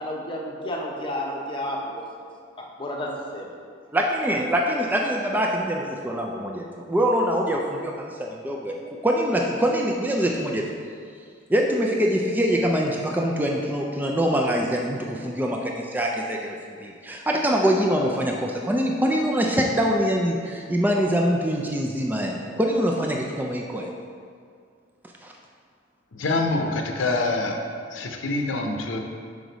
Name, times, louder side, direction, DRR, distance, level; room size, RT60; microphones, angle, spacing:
voice 1, 0.0-2.3 2.6-3.5, left 1 dB, 25° left, -1 dB, 0.8 m, -31 dB
voice 2, 3.9-8.8 9.0-10.7 11.5-23.9 25.2-25.3, equal, 10° right, -1 dB, 0.4 m, -24 dB
voice 3, 26.1-27.6 27.9-29.0, left 2 dB, 80° left, 3 dB, 0.7 m, -25 dB
6.3 x 4.9 x 4.0 m, 2.2 s
head